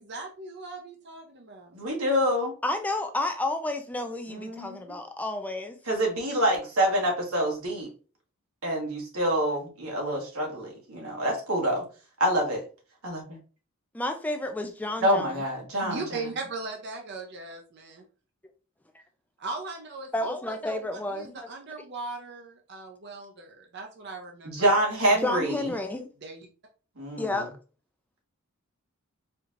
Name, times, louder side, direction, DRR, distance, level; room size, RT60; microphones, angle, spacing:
voice 1, 0.0-1.7 15.8-18.0 19.4-20.5 21.1-24.5 26.2-26.5, right 3 dB, 50° right, 0.6 m, -38 dB
voice 2, 1.7-2.5 4.3-4.8 5.9-7.9 8.6-11.8 12.2-12.6 13.0-13.4 15.0-16.0 24.4-25.7 27.0-27.5, equal, 85° right, 1.4 m, -26 dB
voice 3, 2.6-5.8 13.9-15.4 20.1-21.4 25.2-26.1 27.2-27.5, left 2 dB, 5° left, 0.3 m, -31 dB
4.3 x 2.8 x 2.5 m
head